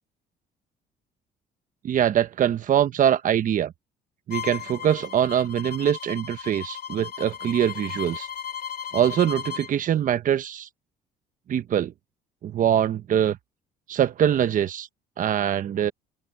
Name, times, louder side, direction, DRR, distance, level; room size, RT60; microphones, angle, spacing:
voice 1, 1.8-3.7 4.3-8.3 8.9-10.7 11.5-11.9 12.4-13.4 13.9-14.9 15.2-15.9, right 10 dB, 50° right, 1.3 m, -23 dB
Bowed string instrument, 4.3-9.7, left 9 dB, 60° left, 4.5 m, -36 dB
open air
cardioid pair, 110°, 17 cm